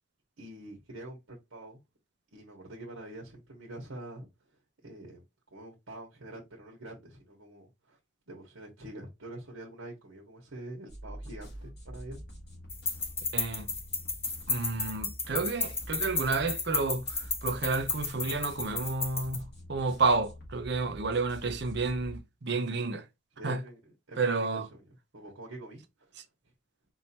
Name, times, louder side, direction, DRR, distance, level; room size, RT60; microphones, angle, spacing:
voice 1, 0.4-1.8 2.3-4.3 4.8-5.2 5.5-8.0 8.3-12.2 23.4-23.8 24.1-26.1, right 1 dB, 80° right, 1.3 m, -45 dB
sound 1, 10.9-22.2, equal, 50° left, 1.9 m, -46 dB
sound 2, 12.7-19.4, left 4 dB, 10° left, 0.4 m, -33 dB
voice 2, 13.3-13.7 14.5-23.1 23.4-23.6 24.2-24.7, right 3 dB, 55° right, 0.6 m, -30 dB
4.5 x 2.8 x 2.8 m
head